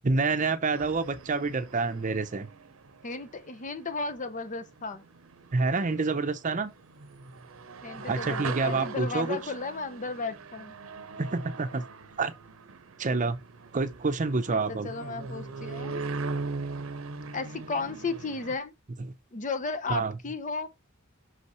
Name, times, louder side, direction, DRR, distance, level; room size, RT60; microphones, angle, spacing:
voice 1, 0.0-2.5 5.5-6.7 8.0-9.4 11.2-11.8 12.2-12.3 13.0-13.4 13.7-14.9 19.9-20.1, right 3 dB, 40° right, 0.7 m, -27 dB
sound 1, 0.7-18.6, right 4 dB, 75° right, 0.8 m, -40 dB
voice 2, 3.0-5.0 7.8-10.7 14.5-16.0 17.3-18.7 19.3-20.7, left 4 dB, 40° left, 0.7 m, -34 dB
5.7 x 5.5 x 3.1 m
head